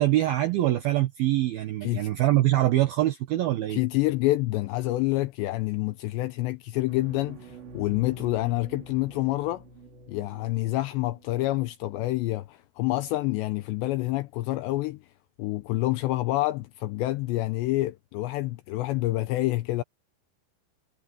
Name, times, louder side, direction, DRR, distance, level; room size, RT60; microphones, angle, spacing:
voice 1, 0.0-3.8, right 15 dB, 85° right, 2.1 m, -24 dB
voice 2, 3.7-9.6 10.1-15.0 15.4-19.8, left 18 dB, 85° left, 2.5 m, -27 dB
sound 1, 6.9-11.4, right 3 dB, 60° right, 6.4 m, -47 dB
omnidirectional pair, 5.8 m